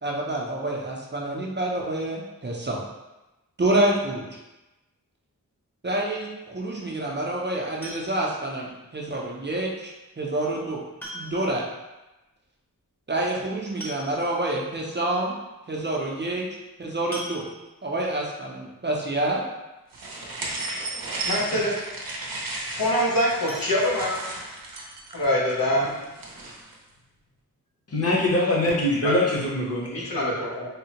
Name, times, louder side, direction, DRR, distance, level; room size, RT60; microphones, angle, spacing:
voice 1, 0.0-2.8 3.6-4.2 5.8-10.8 11.1-11.6 13.1-15.3 15.7-16.5 16.8-17.4 17.8-19.4, right 1 dB, 30° right, -2 dB, 0.5 m, -27 dB
sound 1, 7.8-8.4 9.9-10.0 11.0-11.6 11.9-12.0 12.3-12.4 13.4-13.5 13.8-14.5 15.1-15.2 15.5-15.7 17.1-17.9 23.4-24.6 25.0-25.1 25.5-25.6 26.0-26.1, equal, 5° left, 0.7 m, -41 dB
sound 2, 19.9-26.8, right 2 dB, 80° right, 0.6 m, -34 dB
voice 2, 21.3-21.7 22.7-24.1 25.1-26.0 29.0-29.1 29.9-30.7, left 1 dB, 80° left, -4 dB, 0.8 m, -24 dB
voice 3, 27.9-30.1, left 1 dB, 45° left, -4 dB, 0.9 m, -23 dB
3.4 x 2.0 x 2.8 m, 1.0 s
wide cardioid pair, 70°, 34 cm